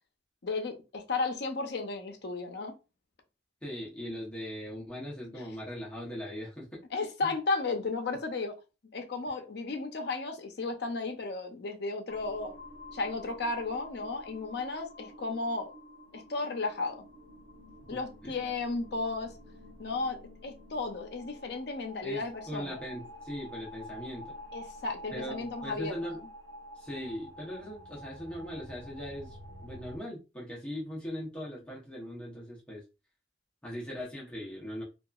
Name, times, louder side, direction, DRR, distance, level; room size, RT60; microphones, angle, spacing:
voice 1, 0.4-2.7 5.3-5.4 6.9-8.5 8.9-12.5 12.9-15.7 16.1-17.0 17.9-19.3 19.8-22.8 24.5-26.1, left 3 dB, 60° left, 0.6 m, -34 dB
voice 2, 3.6-6.8 7.2-7.3 17.9-18.3 22.0-24.3 25.1-26.2 26.8-29.4 29.6-32.8 33.6-34.8, equal, 5° left, 0.8 m, -40 dB
sound 1, 12.1-30.0, left 1 dB, 80° right, 0.8 m, -49 dB
2.8 x 2.4 x 2.3 m
head